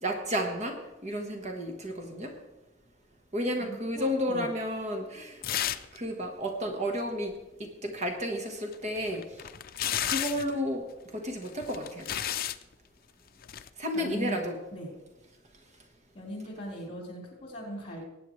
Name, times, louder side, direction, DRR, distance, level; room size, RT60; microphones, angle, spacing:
voice 1, 0.0-2.3 3.3-5.4 5.9-7.3 7.6-9.2 10.1-10.9 11.1-12.1 13.8-14.6, equal, 40° right, 3 dB, 1.3 m, -32 dB
voice 2, 3.6-4.5 13.9-14.4 14.7-14.9 16.1-18.1, equal, 35° left, -1 dB, 4.2 m, -39 dB
sound 1, 5.4-6.0 6.2-6.3 8.7-10.5 11.5-12.6 13.4-13.7, left 11 dB, 50° left, 0.5 m, -32 dB
19.5 x 9.1 x 3.2 m, 1.0 s
head